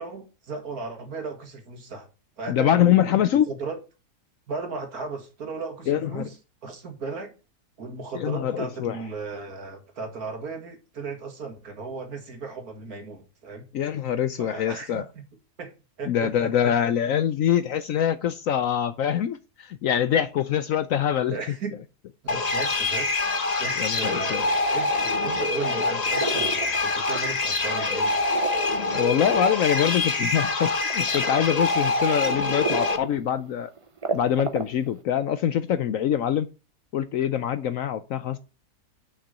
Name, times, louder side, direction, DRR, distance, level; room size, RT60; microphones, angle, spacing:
voice 1, 0.0-2.1 2.4-3.2 3.5-3.8 4.5-6.4 6.6-7.3 7.8-13.6 14.4-15.2 15.6-15.7 16.0-16.3 16.6-16.7 21.3-21.8 22.3-23.1 23.6-28.4, right 4 dB, 65° right, 2.3 m, -36 dB
voice 2, 2.5-3.5 5.9-6.3 8.1-9.0 13.7-15.0 16.1-21.4 23.8-24.5 28.9-33.7 34.1-36.5 36.9-38.4, left 9 dB, 65° left, 0.9 m, -24 dB
sound 1, 22.3-33.0, left 3 dB, 35° left, 0.7 m, -25 dB
sound 2, 26.1-27.4 27.8-30.1 30.9-31.3 31.9-32.0 32.6-33.1 33.4-33.5 33.8-34.9, right 4 dB, 30° right, 0.6 m, -31 dB
6.4 x 6.0 x 6.6 m
omnidirectional pair, 1.7 m